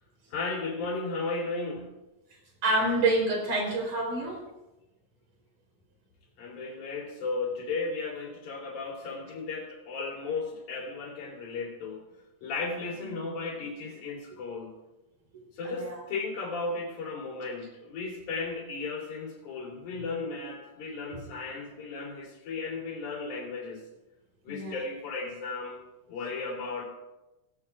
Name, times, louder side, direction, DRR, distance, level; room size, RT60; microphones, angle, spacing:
voice 1, 0.3-1.9 6.4-12.0 12.4-14.7 15.5-23.8 24.4-25.8 26.1-26.8, left 3 dB, 65° left, -2 dB, 4.5 m, -35 dB
voice 2, 2.6-4.4 15.6-16.0 24.5-24.8, right 2 dB, 55° right, 0 dB, 4.9 m, -27 dB
18.5 x 16.0 x 2.4 m, 1.0 s
omnidirectional pair, 3.7 m